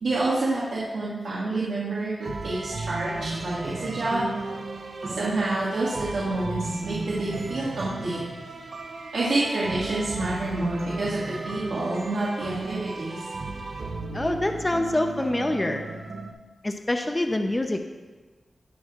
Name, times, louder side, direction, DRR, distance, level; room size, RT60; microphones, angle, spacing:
voice 1, 0.0-4.3 5.1-8.2 9.1-13.2, right 2 dB, 90° right, -9 dB, 1.8 m, -28 dB
sound 1, 2.2-16.3, right 3 dB, 70° right, 0.8 m, -35 dB
voice 2, 14.1-15.8 16.6-17.8, left 1 dB, 25° left, 5 dB, 0.6 m, -25 dB
18.5 x 6.2 x 2.5 m, 1.3 s
cardioid pair, 70°, 0 cm